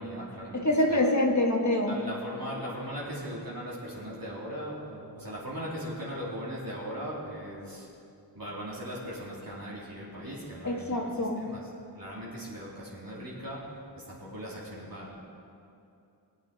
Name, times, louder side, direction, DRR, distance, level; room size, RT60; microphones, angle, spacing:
voice 1, 0.0-1.0 1.9-7.8 8.4-11.1 11.4-11.6 12.0-13.6 14.1-15.2, equal, 55° right, -7 dB, 2.9 m, -39 dB
voice 2, 0.5-2.0 10.6-11.4, left 1 dB, 40° left, 0 dB, 1.5 m, -25 dB
20.5 x 9.4 x 4.0 m, 2.6 s
wide cardioid pair, 75°, 42 cm